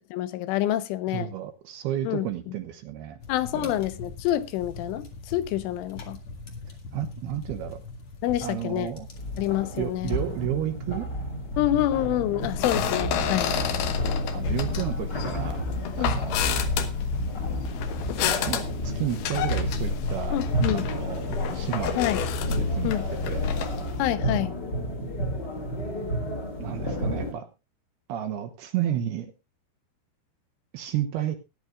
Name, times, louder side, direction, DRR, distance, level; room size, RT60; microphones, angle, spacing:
voice 1, 0.1-1.3 2.1-2.3 3.3-6.2 8.2-8.9 9.4-10.2 11.6-13.6 16.0-16.2 20.3-20.9 22.0-22.2 22.8-23.1 24.0-24.5, left 14 dB, 90° left, 3.4 m, -27 dB
voice 2, 1.1-3.2 3.5-3.7 6.9-7.8 8.4-9.1 9.8-11.1 14.3-15.7 16.0-16.9 18.5-20.4 20.7-22.0 22.6-23.0 23.2-23.5 26.6-27.5 28.1-29.3 30.7-31.3, right 11 dB, 70° right, 2.7 m, -32 dB
sound 1, 3.2-10.5, left 2 dB, 50° left, 1.5 m, -42 dB
sound 2, 9.1-27.3, right 1 dB, 30° left, 2.2 m, -32 dB
sound 3, 12.4-24.2, left 6 dB, 70° left, 2.8 m, -29 dB
19.5 x 10.5 x 2.4 m
omnidirectional pair, 5.5 m